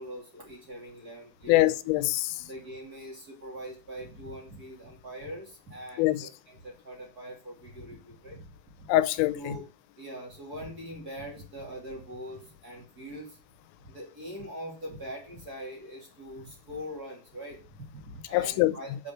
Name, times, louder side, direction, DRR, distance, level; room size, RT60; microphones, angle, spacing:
voice 1, 0.0-1.7 2.4-8.5 8.8-8.9 9.3-9.7 10.0-13.4 13.8-19.1, equal, 25° right, 2.1 m, -42 dB
voice 2, 1.5-2.4 6.0-6.3 8.9-9.4 18.3-18.7, left 16 dB, 90° left, 3.3 m, -23 dB
8.3 x 5.5 x 7.6 m
omnidirectional pair, 5.7 m